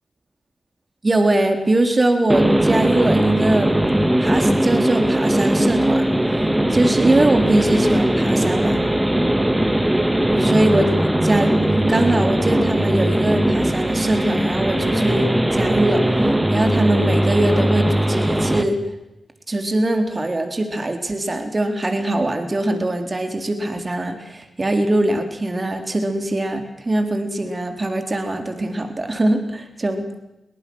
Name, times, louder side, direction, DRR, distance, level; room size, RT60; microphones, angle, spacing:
voice 1, 1.0-3.8 4.2-6.1 6.4-8.8 10.3-11.0 11.2-11.5 11.9-16.0 16.5-18.8 19.5-30.1, right 1 dB, 35° right, 6 dB, 3.8 m, -22 dB
sound 1, 2.3-18.6, right 1 dB, 15° right, 2.5 m, -19 dB
23.0 x 19.0 x 6.4 m, 0.95 s
cardioid pair, 45°, 0 cm